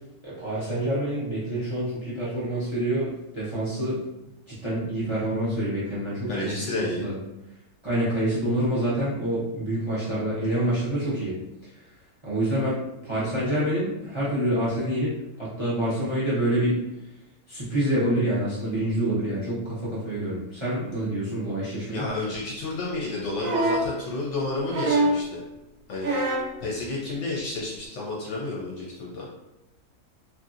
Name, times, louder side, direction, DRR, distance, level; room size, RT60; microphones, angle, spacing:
voice 1, 0.2-4.0 4.5-7.1 7.8-11.3 12.2-12.8 13.0-15.1 15.4-16.7 17.5-22.0, right 1 dB, 25° right, -8 dB, 0.7 m, -27 dB
voice 2, 6.3-7.1 21.8-25.4 25.9-26.1 26.6-29.3, left 2 dB, 65° left, -4 dB, 0.8 m, -31 dB
sound 1, 23.4-23.9 24.7-25.3 26.0-26.5 27.8-27.9, right 2 dB, 70° right, 1.0 m, -24 dB
2.9 x 2.7 x 2.5 m, 0.93 s
omnidirectional pair, 1.6 m